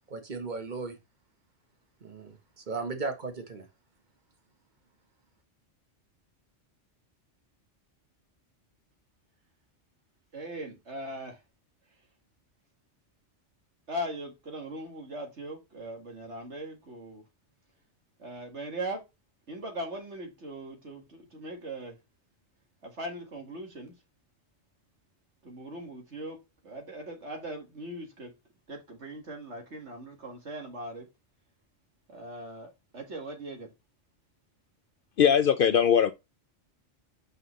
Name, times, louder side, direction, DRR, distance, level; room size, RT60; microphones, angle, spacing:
voice 1, 0.1-1.0 2.0-3.7, right 4 dB, 40° right, 1.5 m, -36 dB
voice 2, 10.3-11.4 13.9-17.2 18.2-19.0 19.5-21.9 22.8-23.9 25.4-26.4 26.6-28.3 28.7-31.1 32.1-33.7, right 1 dB, 70° right, 2.3 m, -39 dB
voice 3, 35.2-36.1, left 8 dB, 60° left, 0.6 m, -21 dB
5.7 x 5.4 x 3.2 m
omnidirectional pair, 1.2 m